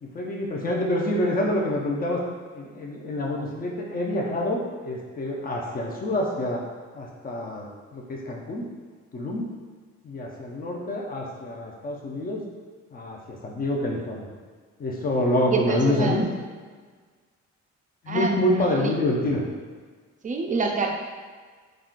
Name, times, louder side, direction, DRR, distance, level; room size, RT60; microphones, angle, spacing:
voice 1, 0.0-2.2 2.5-6.6 6.9-8.6 9.1-9.5 10.0-12.5 12.9-14.3 14.8-16.2 18.0-19.5, left 1 dB, 30° left, -1 dB, 0.6 m, -27 dB
voice 2, 15.5-16.2 18.1-18.9 20.2-20.9, right 4 dB, 25° right, 2 dB, 0.4 m, -27 dB
3.6 x 2.4 x 2.4 m, 1.5 s
cardioid pair, 90°, 30 cm